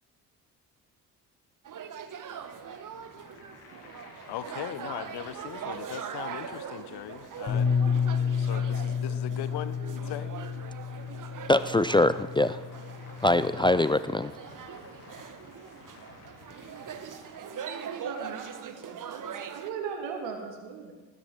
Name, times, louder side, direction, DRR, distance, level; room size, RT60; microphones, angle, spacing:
sound 1, 1.6-19.7, right 7 dB, 40° right, 1.1 m, -42 dB
sound 2, 2.2-17.4, left 3 dB, 75° left, 2.4 m, -53 dB
voice 1, 4.3-7.7 8.4-10.3 13.5-13.9, left 11 dB, 55° left, 14 dB, 1.0 m, -39 dB
Bass guitar, 7.5-13.7, left 6 dB, 40° left, 4.1 m, -30 dB
voice 2, 11.5-12.6 13.2-14.3, left 2 dB, 10° left, 13 dB, 0.3 m, -23 dB
voice 3, 17.4-20.9, right 6 dB, 70° right, 3 dB, 1.8 m, -39 dB
19.5 x 10.0 x 3.6 m, 1.2 s
hypercardioid pair, 45°, 48 cm